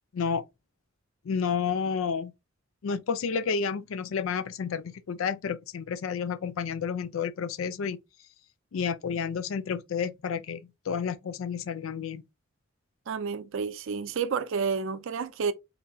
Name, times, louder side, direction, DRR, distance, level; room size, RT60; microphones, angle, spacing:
voice 1, 1.3-2.3 2.8-8.0 8.7-10.6 10.9-12.2, left 6 dB, 75° left, 0.4 m, -30 dB
voice 2, 13.1-15.5, right 5 dB, 70° right, 0.4 m, -30 dB
3.7 x 3.3 x 2.3 m
head